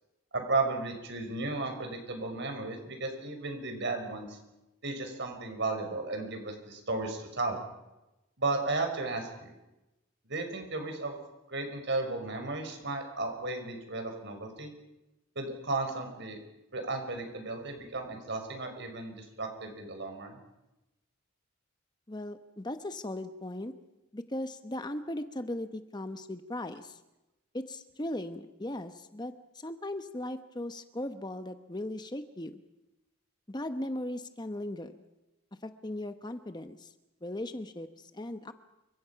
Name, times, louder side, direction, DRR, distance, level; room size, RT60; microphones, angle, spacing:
voice 1, 0.3-4.4 4.8-7.6 8.4-9.5 10.3-11.1 11.5-14.7 15.4-16.4 16.7-20.4, right 3 dB, 55° right, 5 dB, 5.5 m, -34 dB
voice 2, 22.1-23.7 24.1-27.0 27.5-32.6 33.5-34.9 35.6-36.9 37.2-38.5, left 1 dB, 20° left, 9 dB, 1.0 m, -38 dB
29.0 x 25.5 x 5.8 m, 0.97 s
head